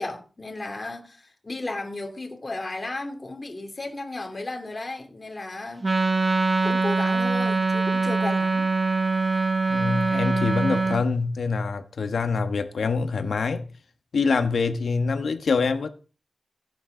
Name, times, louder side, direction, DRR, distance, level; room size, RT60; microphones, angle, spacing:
voice 1, 0.0-5.9 6.6-8.6, left 2 dB, 30° left, 2.7 m, -34 dB
Wind instrument woodwind instrument, 5.8-11.0, right 3 dB, 25° right, 0.9 m, -23 dB
voice 2, 9.7-13.6 14.1-15.9, left 4 dB, 75° left, 1.3 m, -25 dB
16.0 x 9.0 x 3.9 m
wide cardioid pair, 140°, 0 cm